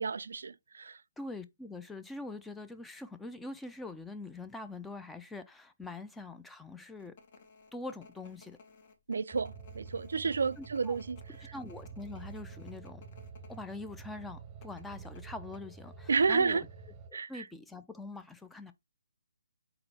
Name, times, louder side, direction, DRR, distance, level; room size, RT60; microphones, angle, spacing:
voice 1, 0.0-1.0 9.1-11.2 16.1-16.6 17.1-17.4, right 5 dB, 65° right, 0.3 m, -31 dB
voice 2, 1.2-7.1 7.7-8.6 10.6-11.0 11.5-13.0 13.5-16.6 17.1-18.7, left 2 dB, 5° left, 0.4 m, -44 dB
sound 1, 7.0-13.6 13.9-14.0 14.6-15.6, left 4 dB, 45° left, 0.9 m, -58 dB
sound 2, 9.3-17.1, right 5 dB, 15° right, 0.8 m, -48 dB
4.0 x 3.9 x 3.2 m
figure-of-eight pair, 145°, 0 cm